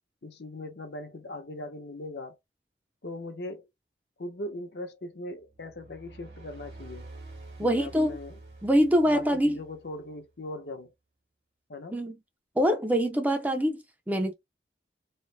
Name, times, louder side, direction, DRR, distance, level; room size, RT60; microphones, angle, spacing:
voice 1, 0.2-2.4 3.0-3.7 4.2-7.1 7.6-8.4 9.0-10.9 11.7-12.0, left 1 dB, 70° left, 0.8 m, -40 dB
sound 1, 5.5-10.1, right 2 dB, 80° right, 1.4 m, -48 dB
voice 2, 7.6-8.2 8.6-9.6 11.9-12.2 12.6-14.3, equal, 10° right, 0.4 m, -24 dB
3.1 x 2.0 x 3.2 m
head